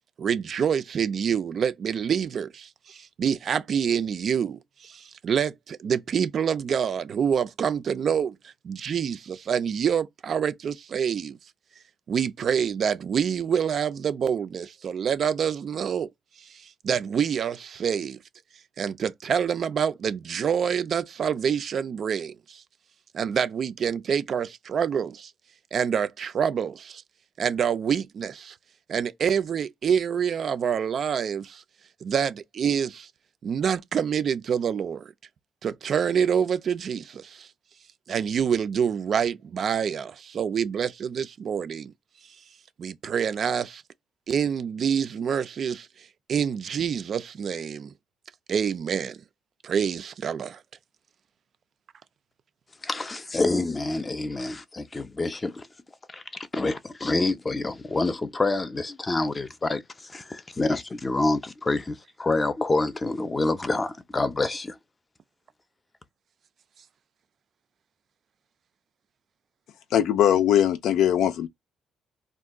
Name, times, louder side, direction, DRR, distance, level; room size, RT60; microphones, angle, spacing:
voice 1, 0.2-11.4 12.1-16.1 16.4-18.2 18.8-22.6 23.1-25.3 25.7-27.0 27.4-28.6 28.9-31.6 32.0-33.1 33.4-35.1 35.6-37.5 38.1-41.9 42.8-43.8 44.3-47.9 48.5-49.2 49.6-50.6, right 7 dB, 55° right, 0.3 m, -27 dB
voice 2, 52.8-55.6 56.1-64.8, left 2 dB, 25° left, 0.5 m, -27 dB
voice 3, 69.9-71.5, left 10 dB, 80° left, 0.4 m, -20 dB
2.4 x 2.2 x 3.6 m
cardioid pair, 90°, 0 cm